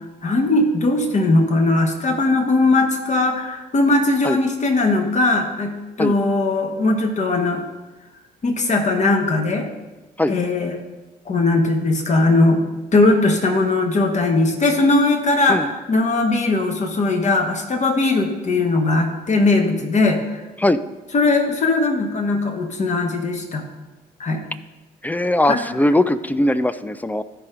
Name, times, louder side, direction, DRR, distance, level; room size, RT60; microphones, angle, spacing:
voice 1, 0.2-5.7 6.0-7.6 8.4-9.7 10.3-10.7 11.3-12.6 12.9-20.2 21.1-23.6 24.2-24.4 25.5-25.6, left 2 dB, 35° left, 3 dB, 1.5 m, -19 dB
voice 2, 25.0-27.2, left 1 dB, 10° left, 13 dB, 0.4 m, -19 dB
13.5 x 5.4 x 3.7 m, 1.1 s
figure-of-eight pair, 50°, 21 cm